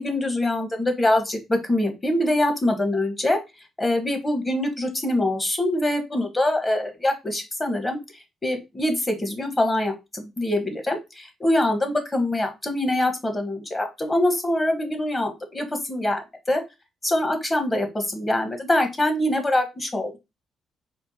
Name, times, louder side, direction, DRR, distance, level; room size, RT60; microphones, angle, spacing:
voice 1, 0.0-3.4 3.8-8.0 8.4-16.6 17.0-20.2, left 1 dB, 20° left, 5 dB, 1.1 m, -24 dB
4.4 x 2.1 x 4.2 m, 0.23 s
cardioid pair, 90°, 0 cm